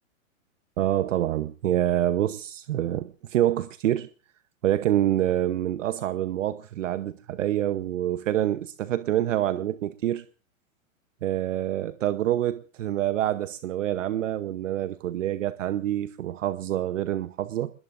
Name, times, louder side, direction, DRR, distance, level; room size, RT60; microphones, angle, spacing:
voice 1, 0.8-4.1 4.6-10.2 11.2-17.7, right 12 dB, 65° right, 0.9 m, -26 dB
25.0 x 21.0 x 2.6 m
hypercardioid pair, 125°, 41 cm